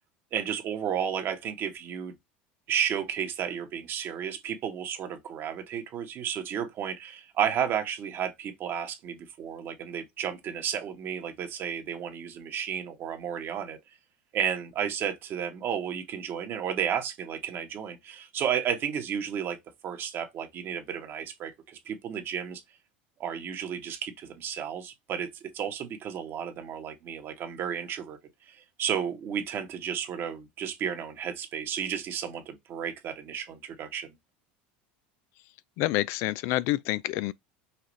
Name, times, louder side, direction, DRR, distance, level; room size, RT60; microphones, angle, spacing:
voice 1, 0.3-2.1 2.7-13.8 14.3-19.6 19.8-22.6 23.2-28.2 28.5-34.1, right 8 dB, 45° right, 1.3 m, -32 dB
voice 2, 35.8-37.3, left 17 dB, 60° left, 0.3 m, -27 dB
5.7 x 2.4 x 3.2 m
hypercardioid pair, 95°, 5 cm